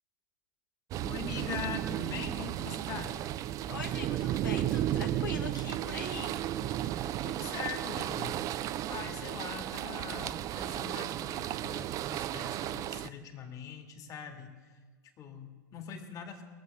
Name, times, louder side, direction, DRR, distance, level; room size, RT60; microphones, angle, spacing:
sound 1, 0.9-13.1, right 12 dB, 35° right, 0.4 m, -34 dB
voice 1, 1.0-3.1 6.8-14.8 15.2-16.4, left 7 dB, 35° left, 3 dB, 2.0 m, -42 dB
voice 2, 3.7-6.4, left 4 dB, 80° left, 1 dB, 1.5 m, -41 dB
21.5 x 7.7 x 5.4 m, 1.5 s
figure-of-eight pair, 95°, 11 cm